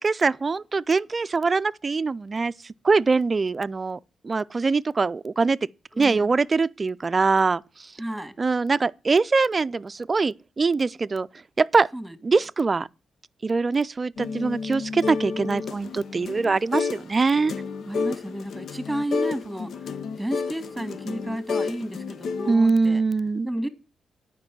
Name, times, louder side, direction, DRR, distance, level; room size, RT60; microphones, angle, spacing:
voice 1, 0.0-2.5 2.8-5.6 6.0-7.9 8.4-11.3 11.6-11.9 12.2-12.9 13.4-17.5 22.5-23.5, right 4 dB, 40° right, 0.4 m, -23 dB
voice 2, 5.9-6.4 8.0-8.3 11.9-12.2 17.9-19.7 20.2-23.0 23.4-23.7, right 1 dB, 5° right, 1.9 m, -32 dB
sound 1, 14.2-17.1 17.3-22.5, left 5 dB, 70° left, 0.6 m, -31 dB
9.7 x 5.4 x 7.6 m
supercardioid pair, 60°, 0 cm